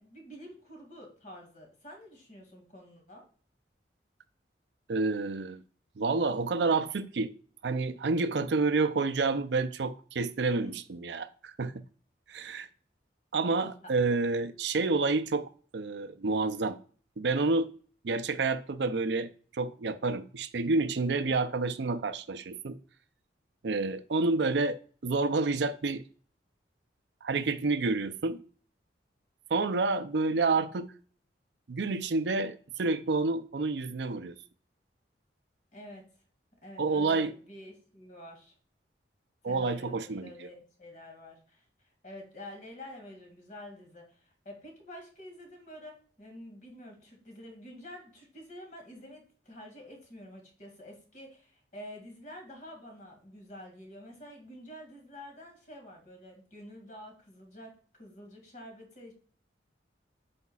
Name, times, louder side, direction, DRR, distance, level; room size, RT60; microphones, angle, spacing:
voice 1, 0.0-3.2 10.3-10.8 13.8-13.9 35.7-36.0 36.6-38.5 39.5-41.6 42.0-59.1, left 1 dB, 45° left, 2.2 m, -48 dB
voice 2, 4.9-5.6 6.0-7.3 7.6-11.7 12.3-12.7 13.3-16.8 17.2-17.7 18.0-22.8 23.6-24.8 25.0-26.0 27.2-28.4 29.5-30.9 31.7-34.3 36.8-37.3 39.4-40.5, right 3 dB, 70° right, 0.5 m, -29 dB
8.2 x 5.1 x 2.4 m
head